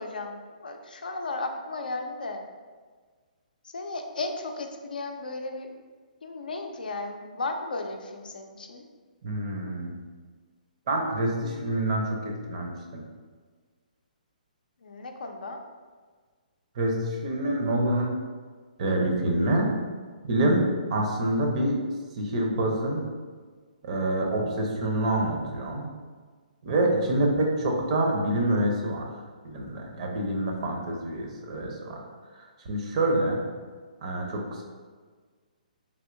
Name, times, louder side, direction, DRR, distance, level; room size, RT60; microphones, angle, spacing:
voice 1, 0.0-2.4 3.6-5.8 6.2-8.9 14.8-15.6, left 3 dB, 75° left, 4 dB, 0.4 m, -35 dB
voice 2, 9.2-10.0 10.9-13.0 16.8-18.1 18.8-19.7 20.3-21.8 22.2-23.0 23.8-25.9 26.6-29.1 29.4-32.0 32.3-33.4 34.0-34.6, right 1 dB, 50° right, 1 dB, 0.6 m, -26 dB
3.4 x 2.7 x 2.5 m, 1.5 s
hypercardioid pair, 135°, 5 cm